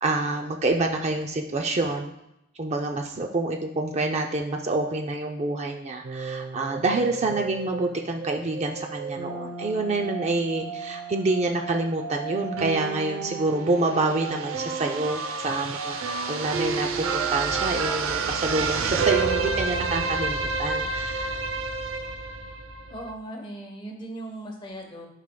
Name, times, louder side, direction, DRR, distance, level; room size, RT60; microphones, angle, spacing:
voice 1, 0.0-2.1 2.6-21.4, right 2 dB, 30° right, 3 dB, 0.4 m, -27 dB
sound 1, 6.0-23.1, right 4 dB, 70° right, 0.6 m, -30 dB
voice 2, 22.9-25.1, right 1 dB, 20° left, 2 dB, 1.0 m, -38 dB
11.5 x 4.9 x 2.2 m, 0.86 s
head